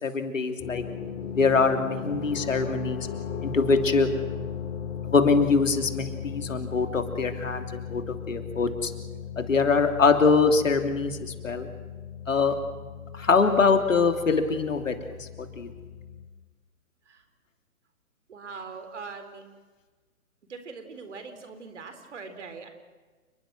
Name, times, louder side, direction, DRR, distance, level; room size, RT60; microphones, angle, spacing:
voice 1, 0.0-0.8 1.4-3.1 3.4-4.1 5.0-8.9 9.4-11.7 12.3-12.5 13.1-15.7, left 4 dB, 65° left, 6 dB, 3.1 m, -23 dB
sound 1, 0.6-16.2, left 8 dB, 20° left, 4.0 m, -37 dB
voice 2, 18.3-19.4 20.5-22.7, right 4 dB, 55° right, 7 dB, 4.2 m, -41 dB
29.5 x 21.0 x 6.2 m, 1.3 s
figure-of-eight pair, 125°, 41 cm